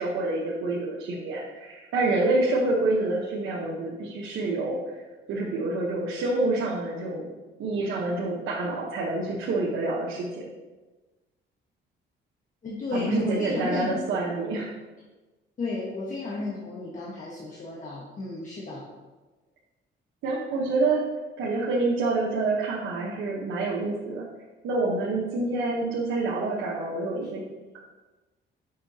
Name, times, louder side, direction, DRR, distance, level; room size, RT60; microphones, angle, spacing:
voice 1, 0.0-4.9 5.3-7.3 7.6-10.5 12.9-14.7 20.2-21.0 21.4-24.2 24.6-27.4, right 2 dB, 80° right, -5 dB, 1.0 m, -27 dB
voice 2, 12.6-14.0 15.6-18.9, left 3 dB, 40° left, -5 dB, 1.2 m, -33 dB
6.7 x 5.5 x 2.8 m, 1.2 s
cardioid pair, 90°, 20 cm